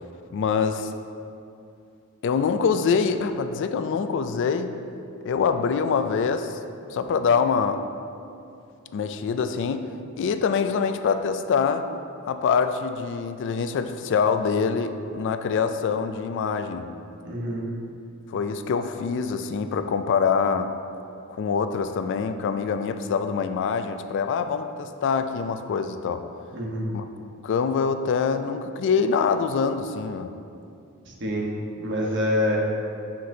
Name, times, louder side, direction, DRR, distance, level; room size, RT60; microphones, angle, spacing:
voice 1, 0.3-0.9 2.2-4.7 5.2-6.6 6.9-7.8 8.9-9.9 10.2-11.9 12.3-16.9 18.3-20.7 21.3-26.2 26.9-27.0 27.4-30.3, left 5 dB, 60° left, 9 dB, 0.3 m, -25 dB
voice 2, 17.2-17.6 26.5-26.9 31.1-31.5 31.8-32.6, left 1 dB, 60° right, -2 dB, 1.1 m, -26 dB
7.6 x 5.9 x 2.7 m, 2.5 s
head